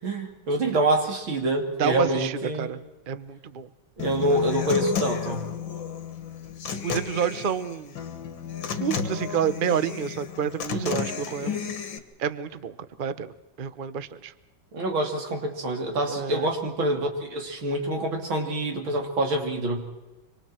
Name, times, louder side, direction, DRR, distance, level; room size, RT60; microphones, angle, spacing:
voice 1, 0.0-2.7 4.0-5.5 10.7-11.0 11.4-11.7 14.7-19.9, right 1 dB, 90° right, 3 dB, 3.7 m, -26 dB
voice 2, 1.8-2.8 3.1-3.7 6.8-7.9 8.8-11.6 12.2-14.3 16.1-16.5, right 8 dB, 50° right, 13 dB, 0.6 m, -29 dB
Human voice / Acoustic guitar, 4.0-12.0, left 7 dB, 70° left, 2.2 m, -32 dB
26.0 x 25.5 x 4.5 m, 1.1 s
omnidirectional pair, 2.1 m